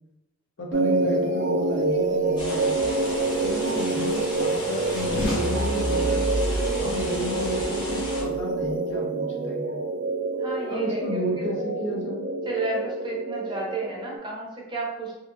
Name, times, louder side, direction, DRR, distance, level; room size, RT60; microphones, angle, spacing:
voice 1, 0.6-2.9 3.4-6.4 6.8-9.8 10.7-12.2, left 1 dB, 65° left, -1 dB, 0.7 m, -32 dB
sound 1, 0.7-14.2, right 3 dB, 60° right, 0.4 m, -27 dB
sound 2, 2.4-8.2, left 1 dB, 25° left, 0.7 m, -35 dB
sound 3, 3.1-8.7, equal, 85° left, 1.1 m, -32 dB
voice 2, 10.4-11.0 12.4-15.2, right 2 dB, 25° right, -3 dB, 0.6 m, -32 dB
2.9 x 2.4 x 2.5 m, 0.99 s
head